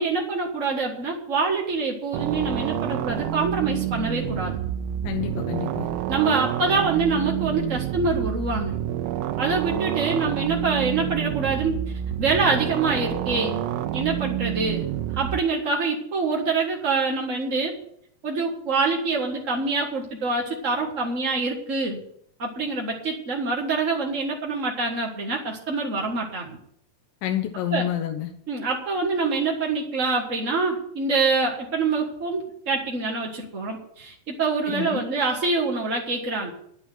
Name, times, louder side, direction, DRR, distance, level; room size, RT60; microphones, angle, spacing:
voice 1, 0.0-4.5 6.1-8.8 9.4-11.8 12.2-13.6 13.9-14.8 15.1-17.7 18.2-22.0 22.4-26.6 27.7-27.9 28.5-36.5, right 4 dB, 45° right, -1 dB, 1.0 m, -25 dB
sound 1, 2.1-15.4, right 12 dB, 85° right, 2.5 m, -28 dB
voice 2, 5.0-5.9 27.2-28.3 34.7-35.0, left 11 dB, 75° left, 4 dB, 2.5 m, -28 dB
10.0 x 8.3 x 9.2 m, 0.68 s
omnidirectional pair, 4.2 m